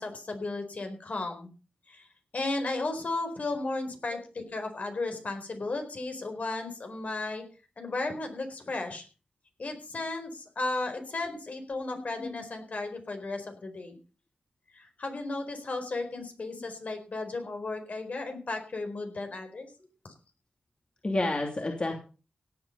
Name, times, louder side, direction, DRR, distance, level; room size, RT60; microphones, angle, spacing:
voice 1, 0.0-1.5 1.9-2.1 2.3-7.4 7.8-9.0 9.6-14.0 14.7-19.7, left 2 dB, 60° left, 6 dB, 4.4 m, -34 dB
voice 2, 12.0-12.4 16.2-16.3 21.0-21.9, left 2 dB, 35° left, 2 dB, 2.9 m, -30 dB
17.0 x 8.5 x 5.6 m, 0.35 s
wide cardioid pair, 75°, 3 cm